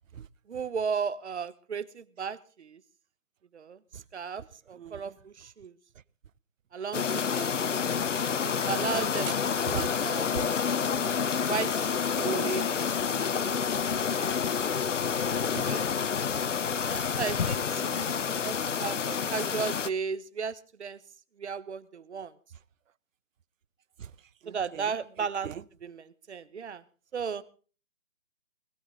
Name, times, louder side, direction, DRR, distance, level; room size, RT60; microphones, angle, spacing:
voice 1, 0.5-2.8 3.5-5.7 6.7-9.3 9.7-10.3 11.4-13.6 15.6-15.8 16.8-21.0 21.4-22.3 24.5-25.5 25.8-26.8 27.1-27.4, right 6 dB, 55° right, 1.1 m, -35 dB
sound 1, 6.9-19.9, left 7 dB, 65° left, 1.0 m, -29 dB
voice 2, 15.3-15.7 17.8-17.9 24.0-24.1 24.4-24.8 25.4-25.5, right 8 dB, 75° right, 0.7 m, -39 dB
21.0 x 16.5 x 3.8 m
hypercardioid pair, 160°, 40 cm